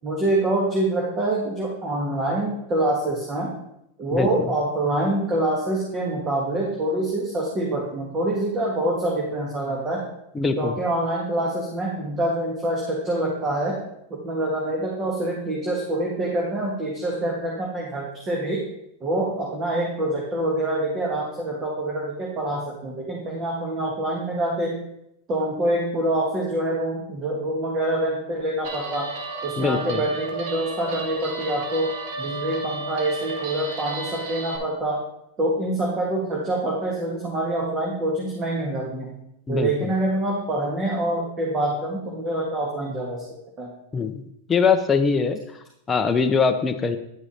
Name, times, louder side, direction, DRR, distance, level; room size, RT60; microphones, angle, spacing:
voice 1, 0.0-3.5 4.0-10.0 10.6-13.8 14.2-18.6 19.0-24.8 25.3-29.1 29.4-31.9 32.2-35.0 35.4-39.1 39.5-43.2 43.6-43.7, right 1 dB, 25° right, -2 dB, 1.6 m, -25 dB
voice 2, 10.4-10.8 29.6-30.0 39.5-39.9 43.9-44.2 44.5-45.4 45.9-47.0, left 5 dB, 15° left, 5 dB, 0.6 m, -22 dB
Guitar, 28.6-34.6, right 3 dB, 60° right, 1.4 m, -33 dB
10.0 x 4.8 x 4.2 m, 0.78 s
supercardioid pair, 135°, 0 cm